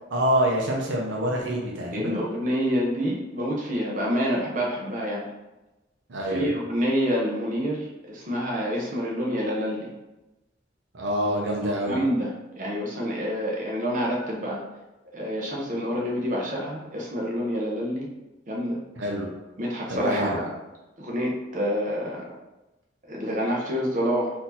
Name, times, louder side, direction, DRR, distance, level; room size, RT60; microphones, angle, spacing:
voice 1, 0.1-2.2 6.1-6.5 10.9-12.0 19.0-19.3 19.9-20.4, equal, 80° right, -1 dB, 0.8 m, -26 dB
voice 2, 1.9-5.2 6.2-9.9 11.9-14.6 15.1-18.1 18.5-18.8 19.6-20.5 21.0-22.4 23.1-24.3, equal, 45° right, -3 dB, 0.9 m, -27 dB
4.3 x 2.8 x 4.1 m, 1.0 s
head